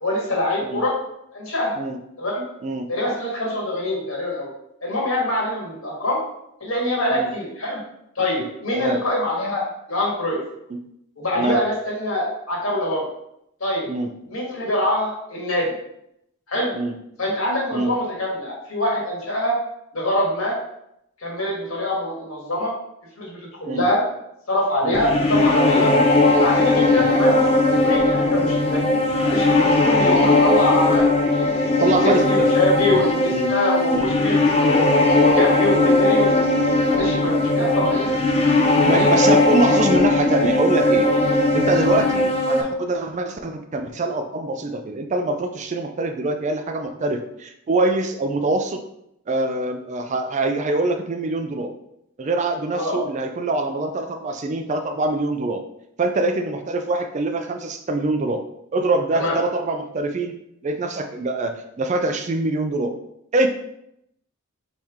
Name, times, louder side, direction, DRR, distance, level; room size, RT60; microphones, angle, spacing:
voice 1, 0.0-0.9 1.3-1.8 2.2-2.4 2.9-4.5 4.8-6.2 6.6-7.8 8.2-9.6 9.9-10.4 11.2-13.0 13.6-13.9 14.3-15.8 16.5-16.7 17.2-19.5 19.9-20.6 21.2-22.7 23.2-24.0 24.5-25.9 26.4-28.8 29.2-31.1 31.6-34.9 35.2-36.4 36.9-38.2 38.8-39.1 39.7-39.8 52.7-53.0 59.1-59.4, left 1 dB, 70° left, -3 dB, 1.6 m, -24 dB
sound 1, 25.0-42.6, left 2 dB, 30° left, 0.5 m, -18 dB
voice 2, 31.7-32.5 32.9-33.0 33.3-33.5 33.9-34.1 38.8-41.1 41.5-48.8 49.3-51.7 52.2-55.6 56.0-58.4 58.7-60.3 60.6-62.9 63.3-63.5, right 2 dB, 35° right, 6 dB, 0.4 m, -24 dB
4.4 x 3.3 x 3.6 m, 0.78 s
head